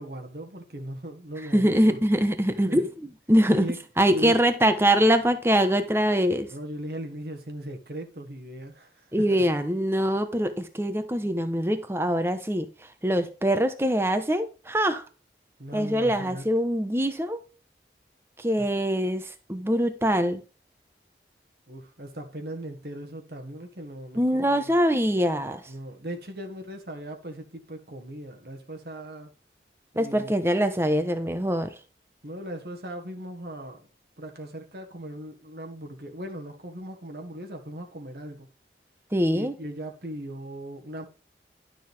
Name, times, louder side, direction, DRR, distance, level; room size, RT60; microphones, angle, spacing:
voice 1, 0.0-2.0 2.7-2.8 3.5-3.8 4.1-4.4 6.5-9.4 15.6-16.5 18.6-18.7 21.7-24.7 25.7-29.3 29.9-30.3 32.2-33.9 34.2-38.5 39.3-41.1, right 1 dB, 60° right, 1.6 m, -38 dB
voice 2, 1.5-3.7 4.0-6.5 9.1-12.7 13.0-15.0 15.7-17.4 18.4-20.4 24.2-25.6 30.0-31.7 39.1-39.5, equal, 15° right, 1.0 m, -23 dB
11.5 x 6.8 x 3.5 m
head